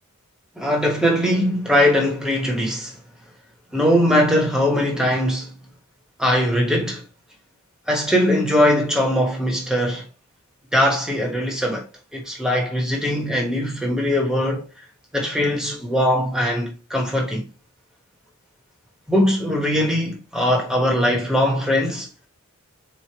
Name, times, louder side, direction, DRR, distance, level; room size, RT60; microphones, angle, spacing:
voice 1, 0.6-2.9 3.7-5.5 6.2-7.0 7.9-10.0 10.7-11.9 12.1-14.7 15.1-17.5 19.1-22.1, equal, 5° right, 1.0 m, -20 dB
4.1 x 3.2 x 2.8 m
head